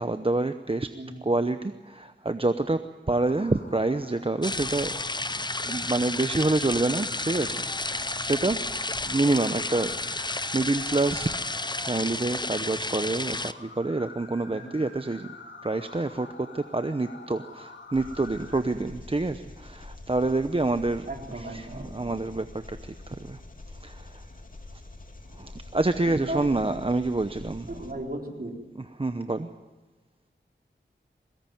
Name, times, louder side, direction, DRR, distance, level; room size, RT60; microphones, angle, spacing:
voice 1, 0.0-0.9 1.2-2.8 3.1-4.9 5.6-8.6 9.0-11.4 11.8-15.3 15.6-21.1 21.3-23.4 23.7-24.2 25.3-27.7 29.0-29.5, right 2 dB, 30° right, 9 dB, 0.8 m, -27 dB
voice 2, 0.9-1.3 8.0-8.2 12.1-12.2 14.5-14.8 18.6-18.8 21.1-22.4 26.0-26.4 27.7-28.6, right 2 dB, 50° right, 1 dB, 4.0 m, -37 dB
sound 1, 3.1-18.6, left 3 dB, 75° left, 3.0 m, -47 dB
sound 2, 4.4-13.5, left 2 dB, 20° left, 0.7 m, -31 dB
Engine, 17.9-27.9, left 2 dB, 45° left, 2.5 m, -46 dB
22.5 x 18.5 x 9.2 m, 1.2 s
wide cardioid pair, 70°, 20 cm